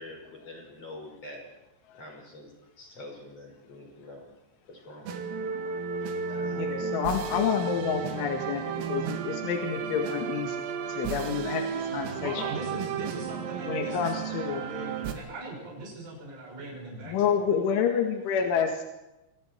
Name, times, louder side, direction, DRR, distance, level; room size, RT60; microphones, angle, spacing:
voice 1, 0.0-1.4 1.9-2.5 2.8-4.3 4.7-5.1 6.3-6.7, left 1 dB, 30° left, 1 dB, 6.3 m, -45 dB
sound 1, 5.1-15.1, right 6 dB, 85° right, 4.8 m, -33 dB
voice 2, 6.5-10.6 10.9-12.4 13.7-14.6 17.0-18.8, left 7 dB, 75° left, 3 dB, 4.2 m, -29 dB
voice 3, 12.2-17.4, right 2 dB, 70° right, -3 dB, 9.3 m, -39 dB
29.0 x 24.5 x 4.7 m, 0.95 s
omnidirectional pair, 5.8 m